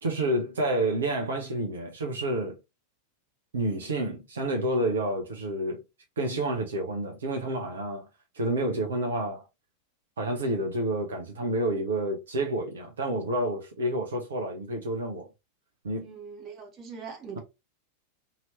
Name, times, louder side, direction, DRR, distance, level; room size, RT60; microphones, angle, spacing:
voice 1, 0.0-2.6 3.5-5.8 6.2-8.1 8.3-9.4 10.2-15.3 15.8-16.1, right 1 dB, 65° right, 0.7 m, -29 dB
voice 2, 16.0-17.4, right 5 dB, 30° right, 1.2 m, -42 dB
2.9 x 2.8 x 3.0 m
figure-of-eight pair, 90°, 0 cm